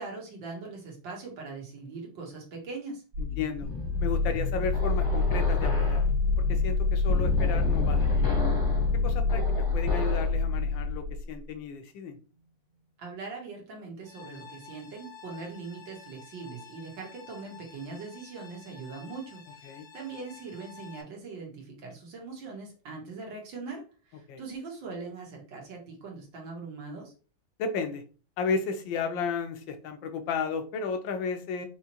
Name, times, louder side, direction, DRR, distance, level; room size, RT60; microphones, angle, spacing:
voice 1, 0.0-3.0 13.0-27.1, right 4 dB, 80° right, 2.0 m, -41 dB
sound 1, 3.1-11.3, left 4 dB, 60° right, 2.1 m, -26 dB
voice 2, 3.2-3.7 4.0-6.0 6.4-8.0 9.0-9.4 9.7-12.2 19.6-19.9 24.3-24.4 27.6-28.0 28.4-31.7, left 5 dB, 85° left, 1.4 m, -33 dB
sound 2, 3.6-10.4, left 1 dB, 15° left, 0.7 m, -34 dB
sound 3, 14.0-21.0, left 6 dB, 65° left, 1.1 m, -50 dB
4.8 x 3.0 x 2.9 m
omnidirectional pair, 2.0 m